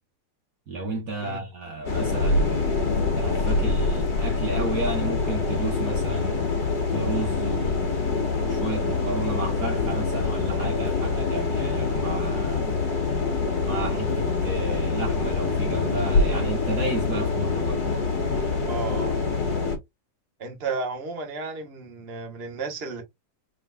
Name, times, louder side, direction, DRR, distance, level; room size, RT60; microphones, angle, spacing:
voice 1, 0.7-2.8 3.2-6.4 6.9-8.1 8.4-12.6 13.6-17.8, right 2 dB, 55° right, 1.3 m, -32 dB
sound 1, 1.9-19.8, left 4 dB, 60° left, 1.7 m, -25 dB
voice 2, 18.7-19.2 20.4-23.0, right 4 dB, 40° right, 1.2 m, -33 dB
4.3 x 3.8 x 2.2 m
omnidirectional pair, 1.9 m